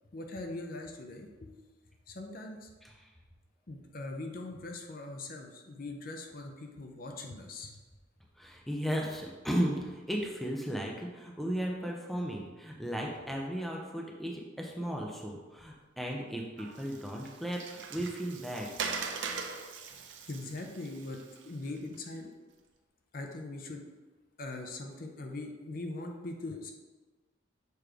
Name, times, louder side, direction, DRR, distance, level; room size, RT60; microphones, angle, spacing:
voice 1, 0.1-1.6 2.1-2.7 3.7-7.8 18.0-18.1 20.3-21.2 21.4-22.3 23.1-23.8 24.4-26.7, left 2 dB, 45° left, 3 dB, 0.6 m, -41 dB
voice 2, 8.4-18.7, equal, ahead, -1 dB, 0.6 m, -35 dB
Water, 16.6-22.0, right 5 dB, 65° right, 0.6 m, -41 dB
6.9 x 3.1 x 4.9 m, 1.3 s
head